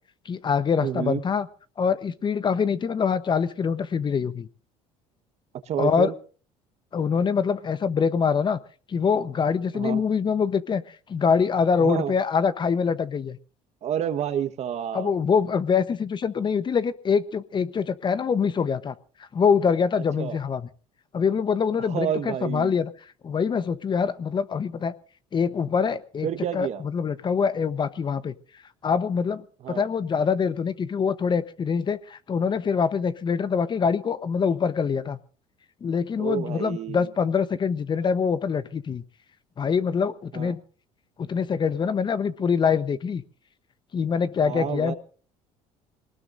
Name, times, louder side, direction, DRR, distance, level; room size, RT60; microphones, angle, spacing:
voice 1, 0.2-1.5 1.8-4.5 5.8-6.1 6.9-8.6 8.9-13.4 14.9-19.0 19.3-20.7 21.1-22.9 23.2-24.9 25.3-26.3 26.5-28.3 28.8-35.2 35.8-39.0 39.6-40.6 41.2-43.2 43.9-44.9, left 6 dB, 35° left, 14 dB, 1.0 m, -24 dB
voice 2, 0.8-1.2 5.6-6.1 9.7-10.0 11.8-12.1 13.8-15.2 20.2-20.4 21.8-22.8 26.2-26.8 29.6-29.8 36.2-37.1 40.3-40.6 44.4-44.9, right 9 dB, 55° right, 10 dB, 1.4 m, -29 dB
22.5 x 19.0 x 2.7 m, 0.39 s
supercardioid pair, 95°, 14 cm